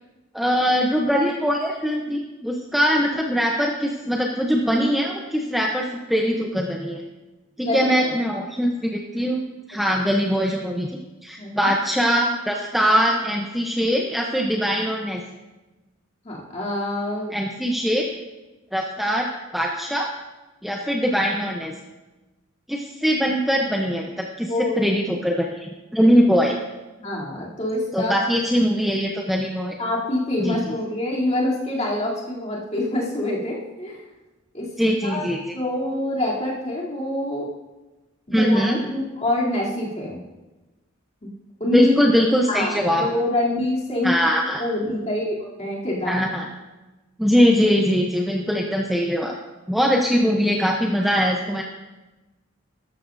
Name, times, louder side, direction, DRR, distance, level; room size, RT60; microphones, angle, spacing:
voice 1, 0.3-7.0 7.6-9.4 9.7-10.9 11.2-15.2 17.3-18.1 18.7-19.3 19.5-20.1 20.6-21.7 22.7-24.5 24.8-25.6 25.9-26.6 27.9-29.7 30.4-30.6 34.8-35.4 38.3-38.8 41.7-43.1 44.0-44.6 46.1-46.5 47.2-49.3 49.7-51.6, equal, ahead, -1 dB, 0.7 m, -21 dB
voice 2, 7.6-8.1 9.9-10.0 11.4-11.7 16.2-17.3 24.5-24.8 27.0-28.4 29.8-34.0 34.5-34.7 35.0-35.3 35.5-37.5 38.3-40.2 41.2-41.3 41.6-41.9 42.5-46.3, left 1 dB, 35° left, -6 dB, 3.0 m, -26 dB
13.0 x 13.0 x 2.6 m, 1.1 s
head